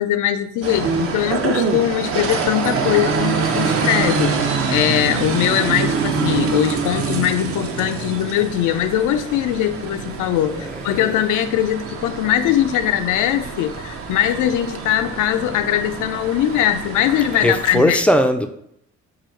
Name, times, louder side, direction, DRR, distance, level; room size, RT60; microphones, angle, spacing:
voice 1, 0.0-18.0, left 11 dB, 80° left, 10 dB, 0.5 m, -21 dB
sound 1, 0.6-17.8, right 5 dB, 50° right, 0.6 m, -25 dB
voice 2, 10.5-11.1 17.3-18.5, equal, 5° left, 6 dB, 0.4 m, -19 dB
4.9 x 2.3 x 4.3 m, 0.72 s
cardioid pair, 90°, 30 cm